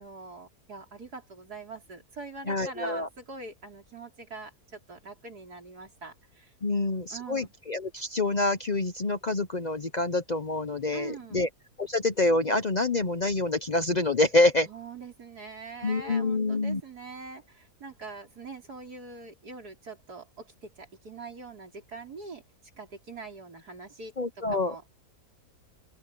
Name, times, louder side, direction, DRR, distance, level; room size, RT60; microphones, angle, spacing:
voice 1, 0.0-7.5 10.9-11.5 14.7-22.4 22.8-24.9, right 4 dB, 90° right, 4.9 m, -43 dB
voice 2, 2.5-3.1 6.6-11.5 11.8-14.7 15.8-16.8 24.2-24.7, left 2 dB, 40° left, 0.7 m, -26 dB
open air
omnidirectional pair, 1.6 m